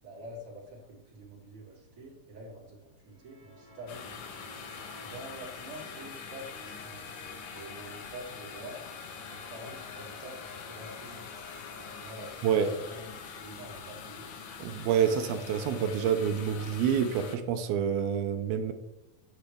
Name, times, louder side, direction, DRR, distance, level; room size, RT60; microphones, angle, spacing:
voice 1, 0.0-4.1 5.0-7.1 7.5-8.8 9.3-11.2 11.8-14.3, right 1 dB, 25° right, -6 dB, 2.9 m, -47 dB
sound 1, 3.1-13.5, left 2 dB, 50° left, 3.5 m, -53 dB
sound 2, 3.9-17.4, left 6 dB, 70° left, 2.1 m, -44 dB
voice 2, 14.6-18.7, right 8 dB, 85° right, 7 dB, 2.6 m, -27 dB
9.2 x 8.2 x 3.4 m, 0.91 s
omnidirectional pair, 4.3 m